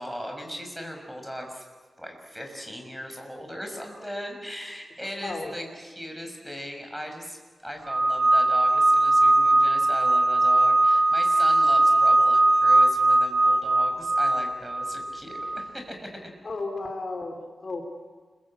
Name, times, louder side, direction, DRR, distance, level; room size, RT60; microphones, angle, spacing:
voice 1, 0.0-1.6 2.0-16.0 16.2-16.3, equal, ahead, 2 dB, 6.1 m, -38 dB
voice 2, 5.0-5.5 16.4-17.8, left 3 dB, 40° left, 4 dB, 3.2 m, -34 dB
sound 1, 7.9-15.6, right 2 dB, 35° right, 6.6 m, -20 dB
29.5 x 22.5 x 8.8 m, 1.5 s
wide cardioid pair, 125°, 0 cm